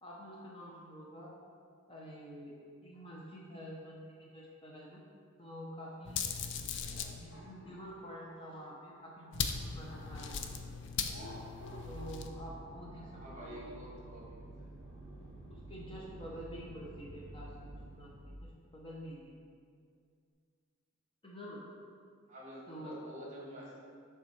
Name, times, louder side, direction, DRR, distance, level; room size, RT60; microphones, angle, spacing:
voice 1, 0.0-1.3 1.9-5.0 5.4-6.3 7.1-10.6 10.9-11.1 11.8-13.7 15.5-19.4 21.2-21.6 22.7-23.0, equal, 25° left, -4 dB, 0.7 m, -48 dB
sound 1, 6.0-7.2 9.3-12.3, left 6 dB, 60° left, 0.4 m, -38 dB
sound 2, 6.8-10.4 11.0-15.5, equal, 80° left, 1.4 m, -54 dB
sound 3, 11.8-18.4, right 1 dB, 5° left, 0.9 m, -50 dB
voice 2, 13.1-14.7 22.3-23.8, equal, 35° right, -4 dB, 1.5 m, -49 dB
7.0 x 3.6 x 4.5 m, 2.2 s
head